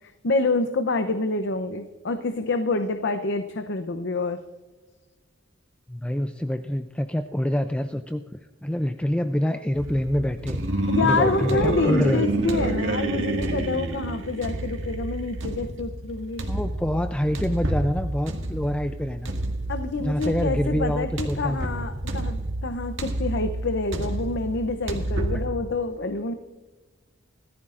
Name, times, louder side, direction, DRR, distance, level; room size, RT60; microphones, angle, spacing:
voice 1, 0.0-4.4 10.9-16.4 19.7-26.3, left 3 dB, 65° left, 8 dB, 0.7 m, -27 dB
voice 2, 5.9-12.3 16.5-19.3 20.0-21.7, left 1 dB, 5° left, 8 dB, 0.4 m, -26 dB
sound 1, 9.8-25.5, right 1 dB, 75° right, 1.9 m, -29 dB
19.5 x 14.0 x 2.5 m, 1.3 s
head